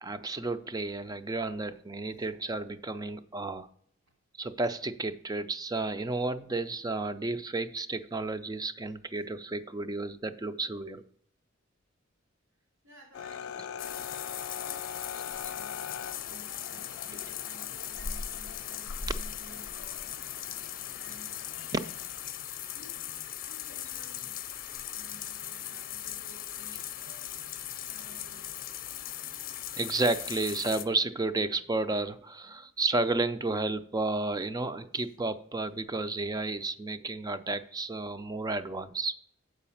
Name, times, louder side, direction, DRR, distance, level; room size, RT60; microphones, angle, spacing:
voice 1, 0.0-3.7 4.4-11.0 21.7-21.8 29.8-39.1, right 3 dB, 20° right, 12 dB, 0.4 m, -32 dB
voice 2, 12.6-14.0 14.3-21.9 22.7-23.0 23.5-24.4 24.9-27.4 27.8-28.7 34.9-35.1, right 1 dB, 75° right, -4 dB, 2.7 m, -56 dB
sound 1, 13.1-22.3, left 8 dB, 80° left, 0.3 m, -43 dB
sound 2, 13.8-30.8, left 9 dB, 45° left, 0.7 m, -39 dB
7.7 x 4.9 x 7.1 m, 0.66 s
head